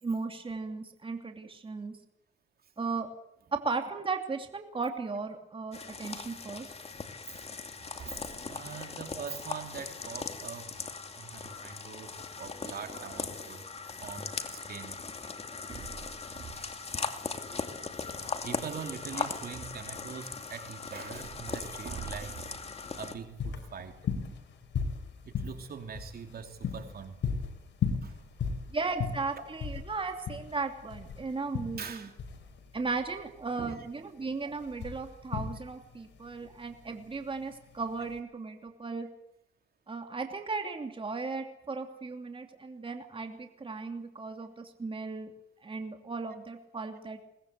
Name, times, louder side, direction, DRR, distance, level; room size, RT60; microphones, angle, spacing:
voice 1, 0.0-2.0 2.8-3.1 3.5-6.7 9.1-9.2 28.7-32.1 32.7-39.1 39.9-45.3 45.6-47.2, right 4 dB, 25° right, 5 dB, 2.9 m, -36 dB
sound 1, 5.7-23.1, left 4 dB, 30° left, 2.6 m, -39 dB
voice 2, 7.7-10.9 11.2-13.6 14.0-15.4 15.7-16.8 18.2-22.5 23.0-24.0 25.2-27.2 28.0-28.2 31.8-32.4 33.6-33.9 36.4-36.6, right 6 dB, 50° right, 5 dB, 3.1 m, -43 dB
sound 2, 22.5-38.2, left 6 dB, 65° left, 4.6 m, -37 dB
22.5 x 20.0 x 8.1 m, 0.80 s
cardioid pair, 90°, 20 cm